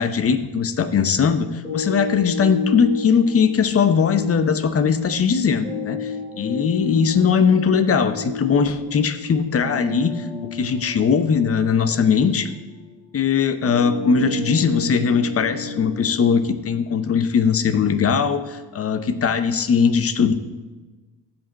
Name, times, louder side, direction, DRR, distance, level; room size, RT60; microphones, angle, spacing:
voice 1, 0.0-12.5 13.1-20.3, left 6 dB, 30° left, 10 dB, 0.7 m, -20 dB
sound 1, 1.6-17.6, left 4 dB, 10° left, 3.6 m, -32 dB
15.0 x 5.3 x 4.1 m, 1.2 s
cardioid pair, 130°, 44 cm